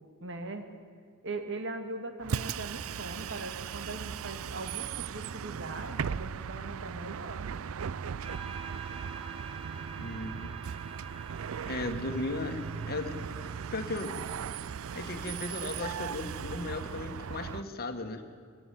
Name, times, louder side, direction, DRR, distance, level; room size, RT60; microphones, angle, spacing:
voice 1, 0.2-0.7 1.2-7.5, right 2 dB, 60° right, 7 dB, 1.9 m, -40 dB
Bus, 2.2-17.6, right 7 dB, 75° right, 0.4 m, -38 dB
sound 1, 8.2-16.4, right 7 dB, 25° right, 2.0 m, -48 dB
voice 2, 10.0-10.5 11.7-12.6 12.9-13.1 13.7-14.2 14.9-18.2, left 2 dB, 45° left, 6 dB, 1.7 m, -36 dB
21.0 x 15.5 x 9.4 m, 2.1 s
head